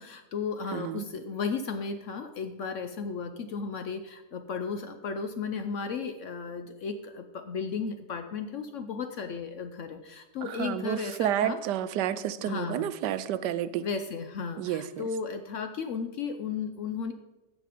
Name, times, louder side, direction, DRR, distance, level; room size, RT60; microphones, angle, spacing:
voice 1, 0.0-11.6 12.5-12.8 13.8-17.1, left 5 dB, 65° left, 8 dB, 0.8 m, -34 dB
voice 2, 0.7-1.0 10.4-13.9 14.6-15.1, right 11 dB, 90° right, 13 dB, 1.2 m, -30 dB
14.5 x 5.2 x 5.0 m, 1.1 s
omnidirectional pair, 1.8 m